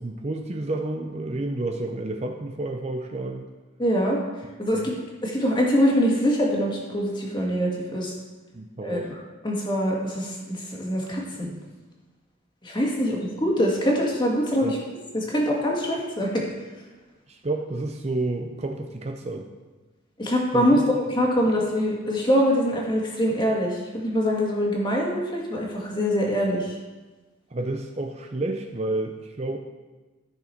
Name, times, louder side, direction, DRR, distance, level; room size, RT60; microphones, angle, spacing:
voice 1, 0.0-3.5 4.7-4.9 8.5-9.1 14.6-14.8 17.3-19.5 20.5-20.8 21.4-21.5 27.5-29.6, right 2 dB, 30° right, 4 dB, 0.6 m, -30 dB
voice 2, 3.8-4.2 4.6-4.9 5.2-8.1 8.8-9.0 9.4-11.5 12.6-14.7 15.1-16.4 20.2-20.8 21.1-26.7, equal, 20° left, -2 dB, 1.8 m, -24 dB
14.0 x 6.3 x 4.5 m, 1.2 s
head